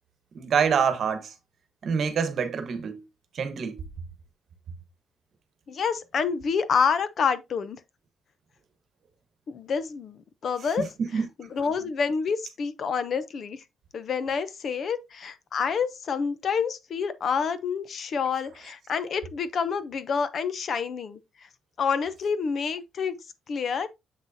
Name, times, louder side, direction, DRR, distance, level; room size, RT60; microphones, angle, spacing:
voice 1, 0.3-1.3 1.8-3.0 3.3-3.8 10.8-11.3, right 6 dB, 50° right, 1.3 m, -26 dB
voice 2, 5.7-7.8 9.5-10.8 11.4-13.6 13.9-21.2 21.8-23.2 23.5-23.9, left 6 dB, 45° left, 0.7 m, -28 dB
7.3 x 6.1 x 2.8 m
cardioid pair, 160°, 0 cm